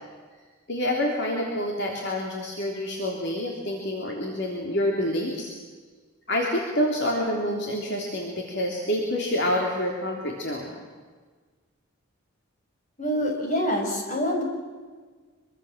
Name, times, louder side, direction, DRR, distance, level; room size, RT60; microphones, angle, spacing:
voice 1, 0.7-5.5 6.3-10.8, left 1 dB, 55° left, 0 dB, 3.5 m, -27 dB
voice 2, 13.0-14.4, equal, 35° left, 2 dB, 5.7 m, -26 dB
25.0 x 24.0 x 7.5 m, 1.5 s
head